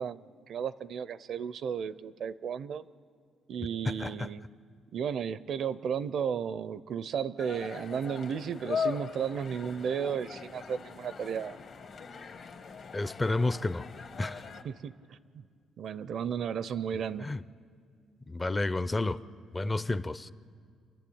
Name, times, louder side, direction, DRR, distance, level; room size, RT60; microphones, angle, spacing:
voice 1, 0.0-2.8 3.5-4.4 4.9-11.6 14.6-14.9 15.3-15.4 15.8-17.3, right 7 dB, 65° right, 0.5 m, -34 dB
voice 2, 3.9-4.3 12.9-13.9 14.2-14.4 17.2-17.4 18.3-19.2 19.5-20.3, left 2 dB, 20° left, 0.5 m, -30 dB
sound 1, 7.4-14.6, left 5 dB, 55° left, 1.4 m, -39 dB
29.0 x 11.5 x 8.6 m
cardioid pair, 100°, 0 cm